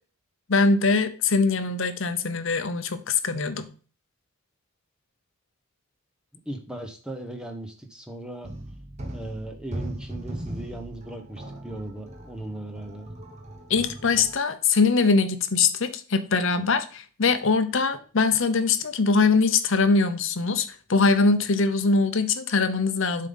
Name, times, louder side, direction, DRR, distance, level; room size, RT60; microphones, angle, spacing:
voice 1, 0.5-3.7 13.7-23.3, left 4 dB, 55° left, 10 dB, 0.8 m, -22 dB
voice 2, 6.5-8.5 9.1-13.1, right 1 dB, 5° right, 4 dB, 1.0 m, -37 dB
sound 1, 8.4-14.4, right 1 dB, 30° right, 1.1 m, -38 dB
7.2 x 3.8 x 5.5 m, 0.38 s
head